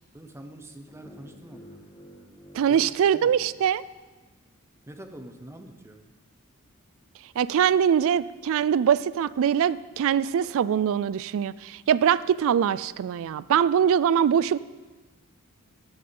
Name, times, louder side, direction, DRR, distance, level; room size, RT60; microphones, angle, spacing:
voice 1, 0.1-1.9 2.7-3.5 4.9-6.1, right 1 dB, 10° right, 6 dB, 0.7 m, -45 dB
sound 1, 0.9-4.0, equal, 20° left, 1.7 m, -51 dB
voice 2, 2.5-3.8 7.4-14.6, right 8 dB, 65° right, 18 dB, 0.3 m, -23 dB
13.0 x 9.5 x 3.9 m, 1.3 s
head